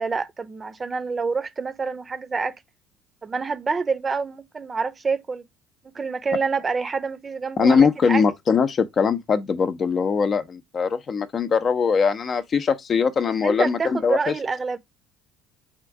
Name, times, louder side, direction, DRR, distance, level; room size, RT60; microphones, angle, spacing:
voice 1, 0.0-2.6 3.2-5.4 5.8-8.2 13.4-14.8, right 4 dB, 30° right, 0.8 m, -27 dB
voice 2, 7.6-14.3, left 5 dB, 40° left, 0.7 m, -21 dB
4.4 x 2.5 x 4.6 m
hypercardioid pair, 70°, 0 cm